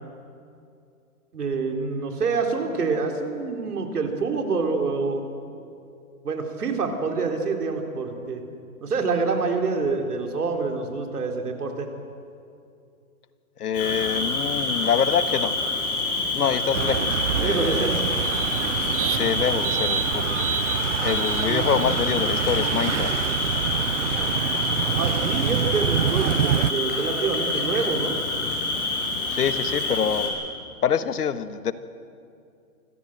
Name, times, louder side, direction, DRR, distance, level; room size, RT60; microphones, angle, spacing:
voice 1, 1.3-5.3 6.2-8.4 8.8-11.9 17.4-18.0 25.0-28.1, right 4 dB, 90° right, 3 dB, 3.9 m, -26 dB
voice 2, 13.6-15.5 16.3-18.0 19.1-20.4 21.0-23.1 29.3-30.4 30.8-31.7, left 8 dB, 85° left, 12 dB, 1.4 m, -25 dB
Cricket, 13.7-30.3, left 2 dB, 35° left, 6.3 m, -27 dB
sound 1, 16.7-26.7, right 11 dB, 55° right, 0.5 m, -27 dB
25.0 x 16.5 x 7.8 m, 2.5 s
hypercardioid pair, 165°, 45 cm